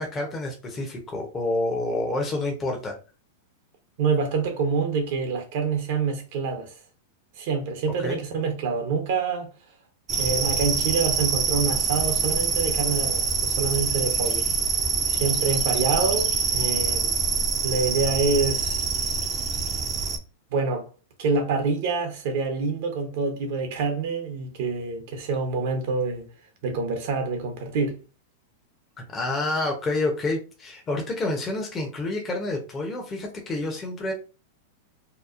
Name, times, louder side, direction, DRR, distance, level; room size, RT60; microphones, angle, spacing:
voice 1, 0.0-3.0 8.0-8.2 29.1-34.1, left 2 dB, 25° left, 0.7 m, -28 dB
voice 2, 4.0-6.7 7.4-9.5 10.2-14.5 15.1-17.2 17.6-18.9 20.5-20.9 21.2-26.3 26.6-28.0, right 4 dB, 60° right, 0.7 m, -26 dB
sound 1, 10.1-20.2, right 5 dB, 30° right, 0.5 m, -25 dB
2.9 x 2.0 x 2.4 m
hypercardioid pair, 110°, 0 cm